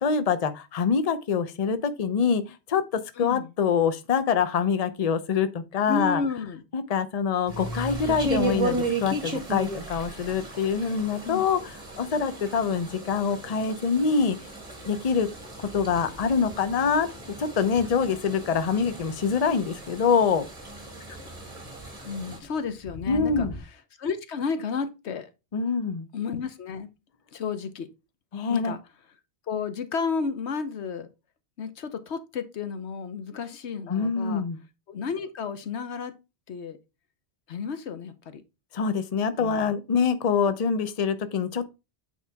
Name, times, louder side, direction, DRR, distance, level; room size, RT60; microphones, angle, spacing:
voice 1, 0.0-6.2 6.7-11.6 11.9-14.4 14.9-15.3 15.6-17.1 17.4-20.5 23.1-23.5 25.5-26.1 28.3-28.7 33.9-34.6 38.7-41.7, left 6 dB, 40° left, 0.7 m, -25 dB
voice 2, 3.2-3.5 5.9-6.6 11.2-11.4 21.1-21.2 22.0-25.3 26.1-26.9 27.3-27.9 28.5-28.8 29.5-31.1 31.6-34.4 34.9-36.1 36.5-36.8 37.5-38.4 39.4-39.7, left 5 dB, 90° left, 1.2 m, -32 dB
sound 1, 7.5-22.4, right 2 dB, 35° right, 2.0 m, -35 dB
Thunder, 14.3-23.6, equal, 15° left, 3.2 m, -47 dB
8.3 x 4.5 x 3.4 m
omnidirectional pair, 1.1 m